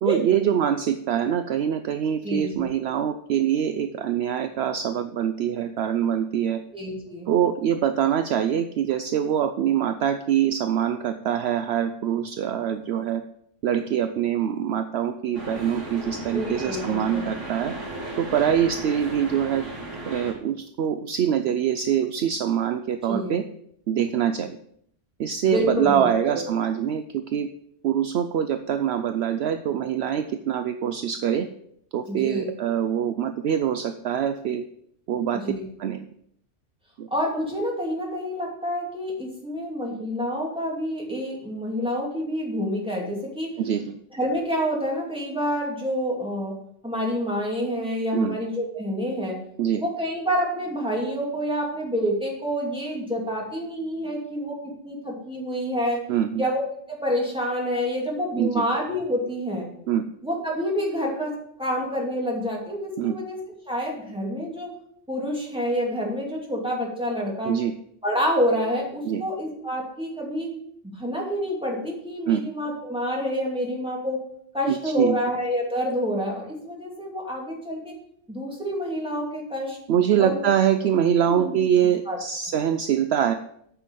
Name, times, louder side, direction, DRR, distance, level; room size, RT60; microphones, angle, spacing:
voice 1, 0.0-6.6 7.3-13.2 13.6-17.7 18.2-19.6 20.1-23.4 23.9-24.6 25.2-27.5 27.8-31.5 31.9-34.6 35.1-35.4 35.8-36.0 37.0-37.1 43.6-43.9 48.1-48.4 49.6-49.8 56.1-56.4 58.4-58.6 59.9-60.0 63.0-63.2 67.4-67.7 69.0-69.2 72.3-72.4 74.7-75.2 79.9-83.3, right 9 dB, 65° right, 8 dB, 0.8 m, -24 dB
voice 2, 2.2-2.7 6.7-7.3 16.3-17.3 23.1-23.4 25.5-26.4 32.1-32.5 35.3-35.6 37.1-43.5 44.1-46.6 46.8-49.4 49.8-54.6 54.8-56.0 56.4-59.7 60.2-63.4 63.7-64.7 65.1-67.5 68.0-70.5 70.9-74.2 74.5-78.0 78.3-79.8 80.2-80.5 81.2-81.6 82.1-82.2, equal, 5° right, -3 dB, 2.5 m, -28 dB
sound 1, 15.3-20.3, right 2 dB, 85° right, 3.2 m, -35 dB
8.4 x 6.0 x 5.3 m, 0.69 s
omnidirectional pair, 1.2 m